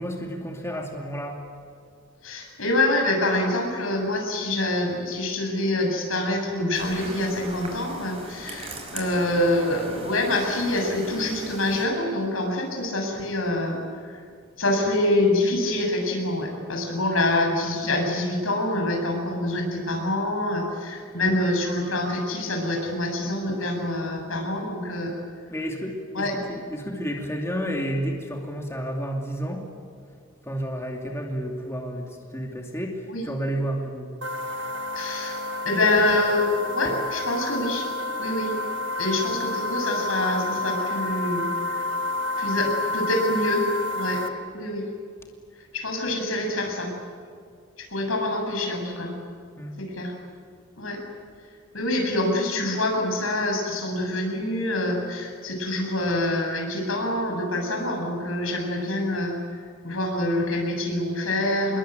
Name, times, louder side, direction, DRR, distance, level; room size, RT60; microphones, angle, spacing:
voice 1, 0.0-1.5 25.5-29.7 30.4-34.1 36.8-36.9 49.6-49.8, equal, 15° left, 1 dB, 2.7 m, -31 dB
voice 2, 2.2-14.1 14.6-25.1 26.1-26.3 33.1-33.2 34.9-35.4 35.6-37.9 38.2-38.5 39.0-41.8 42.4-43.7 43.9-44.2 44.5-44.9 45.7-46.9 47.9-49.1 49.8-50.1 50.8-51.0 51.7-59.4 59.8-61.8, left 1 dB, 85° left, 2 dB, 7.4 m, -26 dB
sound 1, 6.7-11.9, right 2 dB, 30° right, 5.4 m, -39 dB
sound 2, 34.2-44.3, left 2 dB, 60° right, 1.7 m, -29 dB
28.0 x 21.5 x 9.2 m, 2.2 s
head